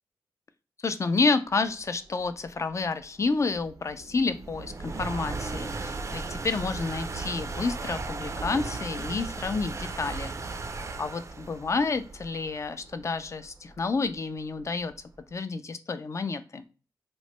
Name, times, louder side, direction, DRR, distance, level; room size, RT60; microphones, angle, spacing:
voice 1, 0.8-10.3 11.0-14.9 15.3-16.6, left 4 dB, 40° left, 11 dB, 0.4 m, -29 dB
sound 1, 1.8-15.2, right 3 dB, 40° right, 0.4 m, -37 dB
3.0 x 2.1 x 3.0 m, 0.35 s
cardioid pair, 50°, 8 cm